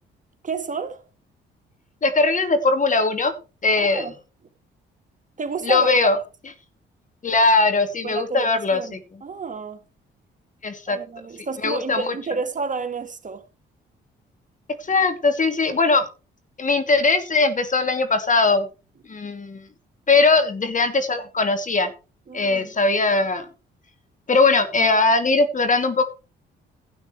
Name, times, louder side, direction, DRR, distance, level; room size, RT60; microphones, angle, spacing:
voice 1, 0.4-1.0 3.8-4.1 5.4-6.1 8.0-9.8 10.9-13.4 22.3-22.7, right 4 dB, 40° right, 2.0 m, -30 dB
voice 2, 2.0-3.3 3.6-4.1 5.6-6.2 7.2-9.0 10.6-11.0 11.6-12.1 14.9-16.0 16.6-18.7 19.1-19.6 20.1-21.9 22.3-23.4 24.3-26.0, left 3 dB, 40° left, 2.7 m, -20 dB
12.5 x 8.8 x 4.6 m
supercardioid pair, 65°, 21 cm